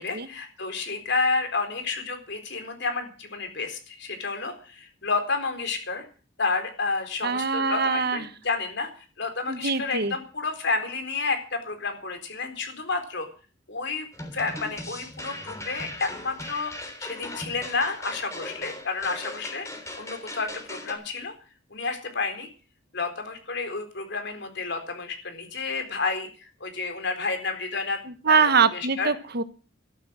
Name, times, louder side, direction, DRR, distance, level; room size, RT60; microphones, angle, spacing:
voice 1, 0.0-6.0 6.4-8.9 9.2-13.3 13.7-14.1 14.3-19.7 20.0-21.3 21.7-22.5 22.9-28.0 28.2-29.1, left 4 dB, 60° left, 7 dB, 4.1 m, -30 dB
voice 2, 7.2-8.2 9.5-10.1 28.2-29.4, right 5 dB, 55° right, 12 dB, 1.2 m, -23 dB
sound 1, 14.1-20.9, left 1 dB, 15° left, 3.5 m, -39 dB
13.5 x 11.5 x 7.5 m, 0.37 s
head